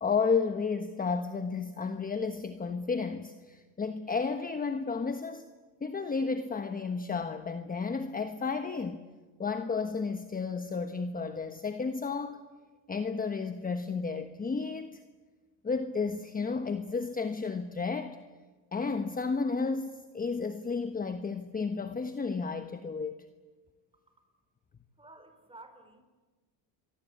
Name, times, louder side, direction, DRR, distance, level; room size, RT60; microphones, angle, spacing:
voice 1, 0.0-5.4 5.8-9.0 9.4-12.4 12.9-15.0 15.6-18.2 18.7-23.3, left 4 dB, 20° left, 9 dB, 1.2 m, -32 dB
voice 2, 25.0-26.0, right 2 dB, 10° right, 7 dB, 4.9 m, -52 dB
29.0 x 23.5 x 8.5 m, 1.3 s
cardioid pair, 120°, 46 cm